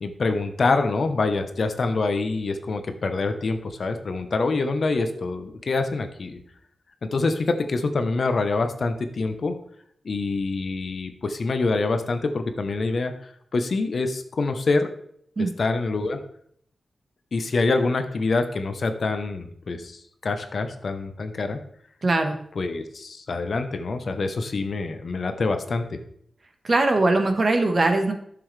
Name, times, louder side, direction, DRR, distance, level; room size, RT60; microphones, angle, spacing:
voice 1, 0.0-6.4 7.0-9.6 10.0-13.1 13.5-14.9 15.4-16.2 17.3-21.6 22.5-26.0, left 3 dB, 50° left, 8 dB, 0.9 m, -25 dB
voice 2, 22.0-22.4 26.6-28.1, right 2 dB, 35° right, 5 dB, 1.2 m, -21 dB
11.0 x 6.9 x 3.3 m, 0.68 s
wide cardioid pair, 140°, 0 cm